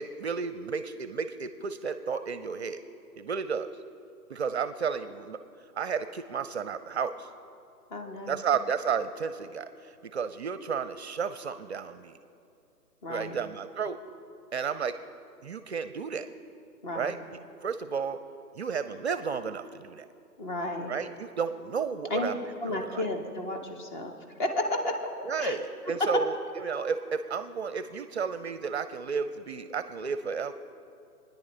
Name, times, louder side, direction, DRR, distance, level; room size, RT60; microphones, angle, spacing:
voice 1, 0.0-2.8 3.2-3.7 4.3-5.4 5.8-7.3 8.3-12.2 13.1-14.0 14.5-15.0 15.4-16.3 16.9-18.2 18.5-20.1 20.9-22.3 22.7-23.0 25.2-30.5, right 6 dB, 45° right, 12 dB, 0.6 m, -32 dB
voice 2, 7.9-8.4 13.0-13.4 16.8-17.2 20.4-20.9 22.1-24.1 24.4-25.0 25.4-25.6 26.0-26.1, left 1 dB, 30° left, 4 dB, 1.5 m, -32 dB
27.0 x 10.0 x 3.3 m, 2.5 s
figure-of-eight pair, 140°, 46 cm